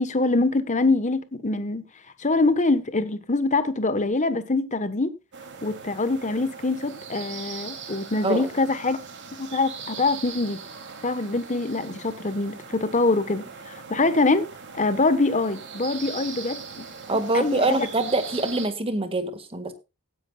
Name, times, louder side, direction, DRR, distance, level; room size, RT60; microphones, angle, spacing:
voice 1, 0.0-1.8 2.2-5.1 5.6-9.0 9.4-10.6 11.0-14.4 14.7-16.9 17.3-17.9, left 3 dB, 35° left, 1.2 m, -24 dB
sound 1, 5.3-18.7, right 5 dB, 55° right, 2.9 m, -40 dB
voice 2, 17.1-19.7, right 2 dB, 25° right, 1.7 m, -25 dB
17.0 x 10.0 x 2.4 m
head